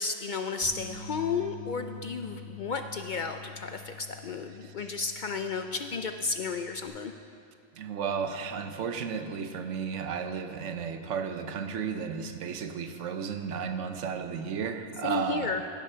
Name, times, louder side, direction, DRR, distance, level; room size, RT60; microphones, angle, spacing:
voice 1, 0.0-7.1 15.0-15.6, left 4 dB, 60° left, 7 dB, 0.5 m, -33 dB
sound 1, 0.6-6.9, left 4 dB, 25° right, 3.5 m, -46 dB
voice 2, 7.7-15.6, right 6 dB, 90° right, 8 dB, 1.1 m, -33 dB
16.5 x 7.8 x 5.6 m, 2.5 s
omnidirectional pair, 1.2 m